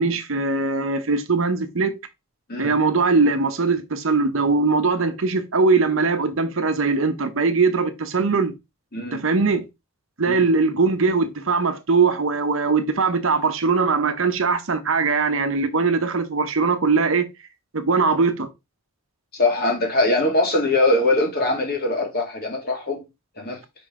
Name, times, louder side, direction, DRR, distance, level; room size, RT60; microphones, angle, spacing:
voice 1, 0.0-2.0 2.6-8.5 9.1-9.7 10.2-17.3 17.7-18.5, right 4 dB, 65° right, 0.9 m, -21 dB
voice 2, 19.3-23.0 23.4-23.6, left 2 dB, 45° left, 2.3 m, -22 dB
5.3 x 5.1 x 3.7 m
head